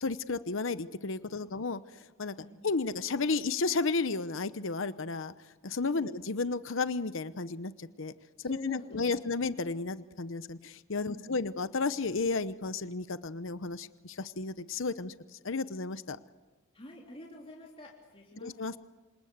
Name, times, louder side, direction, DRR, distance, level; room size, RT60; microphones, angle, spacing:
voice 1, 0.0-1.8 2.2-2.3 2.6-5.3 5.6-8.1 8.4-15.1 15.4-16.2 18.4-18.8, left 3 dB, 65° left, 13 dB, 0.9 m, -33 dB
voice 2, 8.4-9.3 11.0-11.4 16.7-18.6, left 1 dB, 30° left, -2 dB, 3.5 m, -46 dB
27.0 x 27.0 x 8.0 m, 1.2 s
head